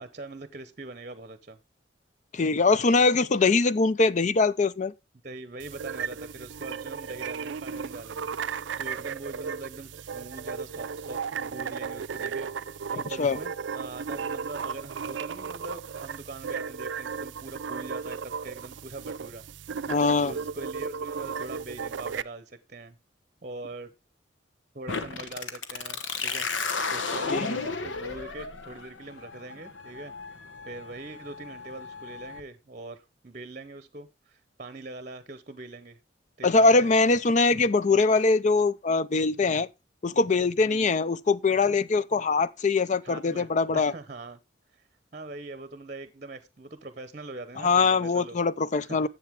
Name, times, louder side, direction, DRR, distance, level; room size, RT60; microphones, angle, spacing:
voice 1, 0.0-1.6 5.2-19.4 20.2-23.0 23.4-23.9 24.7-26.5 26.9-30.1 30.6-36.0 36.4-36.9 40.7-40.9 43.0-44.4 44.7-44.8 45.1-48.4 48.8-49.1, right 2 dB, 40° right, 0.8 m, -42 dB
voice 2, 2.3-4.9 13.2-13.4 19.9-20.3 27.3-27.4 36.4-39.7 40.0-43.9 47.6-49.1, left 3 dB, 40° left, 0.5 m, -22 dB
sound 1, 5.6-22.2, right 6 dB, 75° right, 0.4 m, -35 dB
sound 2, 24.9-32.4, left 4 dB, 85° left, 1.2 m, -34 dB
10.5 x 7.8 x 3.5 m
head